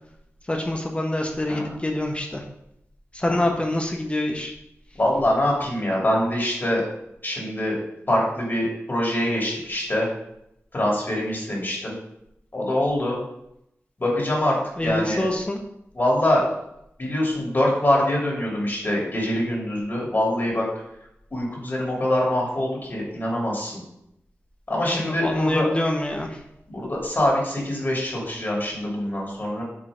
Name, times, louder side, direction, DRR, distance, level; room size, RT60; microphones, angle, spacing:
voice 1, 0.5-2.4 3.2-4.5 14.8-15.6 24.9-26.4, left 1 dB, 25° left, 2 dB, 1.1 m, -25 dB
voice 2, 5.0-6.8 7.2-7.8 8.1-10.1 10.7-11.9 12.5-13.2 14.0-14.6 14.8-15.2 15.9-16.4 17.0-20.7 21.3-23.8 24.7-25.7 26.7-29.6, left 1 dB, 40° left, -3 dB, 2.9 m, -24 dB
7.7 x 3.8 x 5.1 m, 0.79 s
wide cardioid pair, 75°, 5 cm